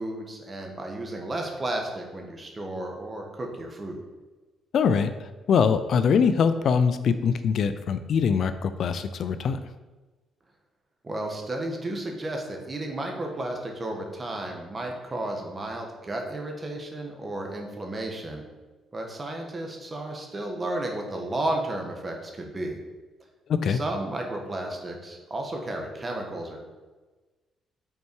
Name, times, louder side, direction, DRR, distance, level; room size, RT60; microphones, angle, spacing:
voice 1, 0.0-4.0 11.0-18.4 18.9-22.8 23.7-26.6, right 1 dB, 30° right, 2 dB, 1.3 m, -33 dB
voice 2, 4.7-9.6 23.5-23.8, left 6 dB, 65° left, 11 dB, 0.3 m, -23 dB
5.6 x 4.4 x 4.6 m, 1.2 s
cardioid pair, 90°, 0 cm